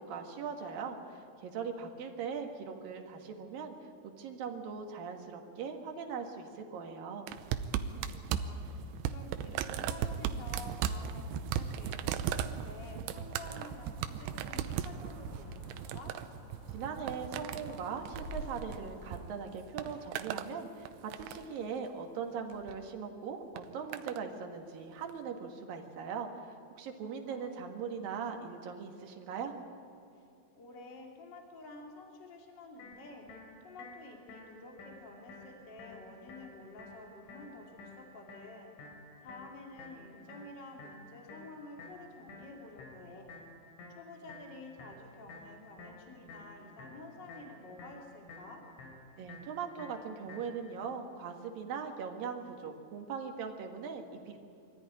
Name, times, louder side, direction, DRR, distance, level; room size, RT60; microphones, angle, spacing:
voice 1, 0.0-3.7 4.0-7.3 16.7-26.3 26.8-29.5 49.2-54.4, right 6 dB, 60° right, 3 dB, 2.9 m, -40 dB
sound 1, 7.3-19.2 19.5-20.5 20.9-21.6 22.5-22.8 23.6-24.2 25.1-25.2, right 9 dB, 80° right, 2.8 m, -37 dB
voice 2, 7.9-16.1 27.0-27.6 30.1-30.3 30.6-33.3 33.6-38.7 39.2-43.2 43.9-48.6, left 2 dB, 30° left, 1 dB, 2.5 m, -50 dB
sound 2, 13.4-19.2, right 1 dB, 60° left, 5.7 m, -49 dB
sound 3, 32.8-50.8, left 2 dB, 85° left, 5.9 m, -52 dB
24.0 x 14.5 x 9.8 m, 2.6 s
omnidirectional pair, 5.4 m